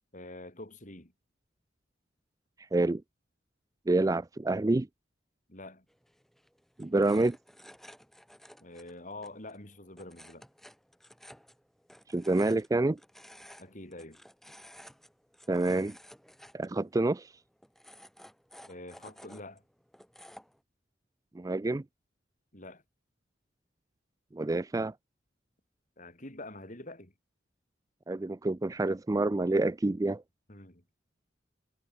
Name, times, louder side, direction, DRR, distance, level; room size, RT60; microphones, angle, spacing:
voice 1, 0.1-1.1 5.5-5.8 8.6-10.5 13.6-14.2 18.7-19.6 22.5-22.8 26.0-27.1 30.5-30.8, left 2 dB, 40° left, 6.7 m, -46 dB
voice 2, 2.7-3.0 3.9-4.9 6.8-7.4 12.1-13.0 15.5-16.0 16.5-17.3 21.3-21.8 24.3-24.9 28.1-30.2, right 2 dB, 20° right, 0.4 m, -27 dB
sound 1, 5.9-20.6, equal, ahead, 7.5 m, -55 dB
head